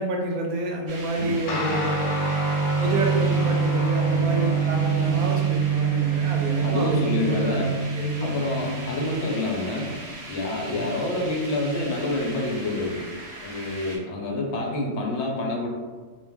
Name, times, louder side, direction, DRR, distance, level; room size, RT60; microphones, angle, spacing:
voice 1, 0.0-2.0 2.8-8.3 8.6-8.8 10.7-10.8, right 1 dB, 85° right, 1 dB, 1.0 m, -28 dB
sound 1, 0.9-14.0, right 1 dB, 70° right, 0.3 m, -40 dB
Guitar, 1.5-9.2, right 5 dB, 85° left, 1.0 m, -25 dB
voice 2, 6.6-7.7 8.2-9.9 10.3-13.1 13.4-15.7, left 2 dB, 65° left, -1 dB, 0.8 m, -27 dB
2.4 x 2.1 x 3.4 m, 1.3 s
omnidirectional pair, 1.5 m